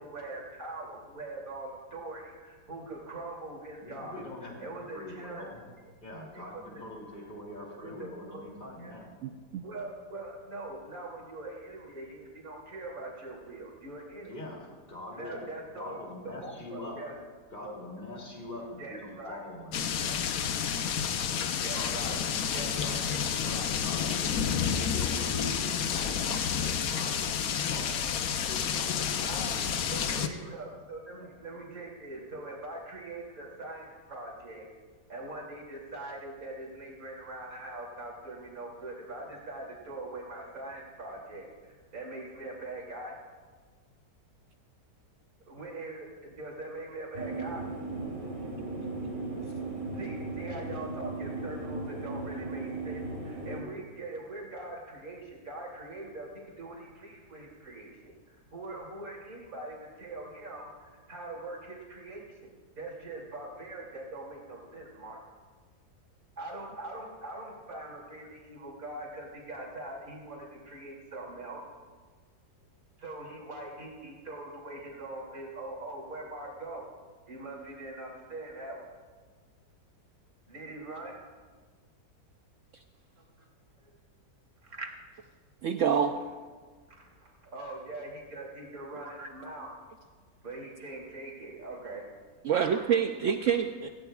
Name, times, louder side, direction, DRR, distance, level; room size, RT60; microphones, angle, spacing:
voice 1, 0.0-4.2 4.6-5.5 6.5-6.8 7.7-8.4 8.8-9.0 9.6-14.4 15.1-16.0 16.2-17.1 17.6-18.0 18.8-19.4 21.5-22.2 22.5-23.6 29.1-29.6 29.9-34.7 35.1-43.1 45.5-47.6 49.9-62.5 62.8-65.2 66.4-71.6 73.0-76.9 77.3-78.9 80.5-81.2 83.2-83.5 83.8-83.9 84.6-84.9 87.0-89.8 90.4-92.0 92.5-92.8 93.5-93.6, right 2 dB, 55° right, -2 dB, 3.2 m, -42 dB
voice 2, 3.8-5.7 6.0-9.1 14.2-15.5 15.7-17.0 17.5-20.2 21.7-23.0 23.4-30.5 31.2-31.3, left 1 dB, 25° left, -2 dB, 2.9 m, -43 dB
voice 3, 9.2-9.6 84.7-84.9 85.6-86.1 89.2-89.3 92.4-93.9, right 7 dB, 75° right, 6 dB, 0.7 m, -27 dB
sound 1, 19.7-30.3, left 8 dB, 65° left, 1.1 m, -30 dB
sound 2, 47.1-53.6, right 2 dB, 35° right, 4.0 m, -37 dB
17.0 x 16.0 x 2.4 m, 1.5 s
omnidirectional pair, 1.9 m